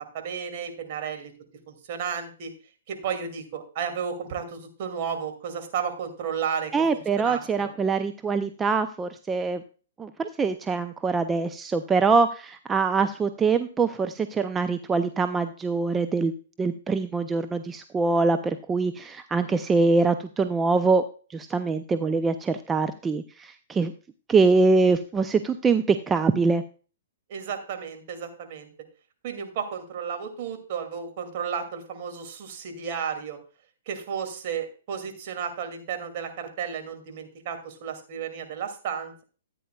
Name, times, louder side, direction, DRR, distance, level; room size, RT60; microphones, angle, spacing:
voice 1, 0.1-1.3 1.7-2.5 2.9-7.7 27.3-28.7 29.2-33.4 33.9-39.2, right 7 dB, 50° right, 5 dB, 2.5 m, -33 dB
voice 2, 6.7-9.6 10.0-21.0 21.3-23.9 24.3-26.6, right 4 dB, 15° right, 9 dB, 0.5 m, -24 dB
14.0 x 9.1 x 2.3 m, 0.38 s
hypercardioid pair, 125°, 0 cm